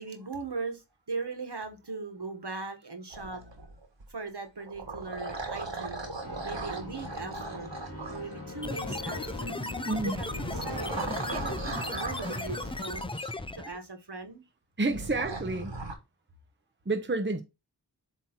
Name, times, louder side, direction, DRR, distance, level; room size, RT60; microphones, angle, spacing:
voice 1, 0.0-3.4 4.1-6.0 6.4-9.6 9.9-10.3 10.5-10.9 11.3-13.1 13.5-14.4, right 4 dB, 65° right, 1.4 m, -39 dB
sound 1, 3.1-4.1 4.6-8.8 10.1-13.3 14.9-15.9, right 3 dB, 85° right, 1.4 m, -38 dB
sound 2, 6.2-12.9, left 2 dB, 30° left, 2.0 m, -42 dB
sound 3, 8.6-13.8, left 2 dB, 15° left, 0.5 m, -36 dB
voice 2, 9.8-10.2 14.8-15.8 16.9-17.4, right 2 dB, 25° right, 0.8 m, -29 dB
7.8 x 3.0 x 4.4 m
wide cardioid pair, 40°, 43 cm